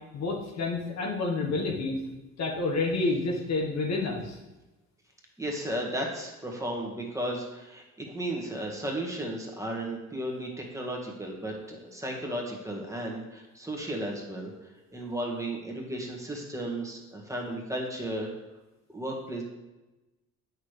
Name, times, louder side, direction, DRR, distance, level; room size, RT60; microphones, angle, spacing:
voice 1, 0.1-2.0 2.4-4.4, left 3 dB, 60° left, 0 dB, 1.4 m, -29 dB
voice 2, 5.4-14.5 14.9-18.3 18.9-19.4, right 1 dB, 10° right, -1 dB, 1.7 m, -34 dB
8.2 x 6.4 x 3.3 m, 1.1 s
cardioid pair, 90°, 30 cm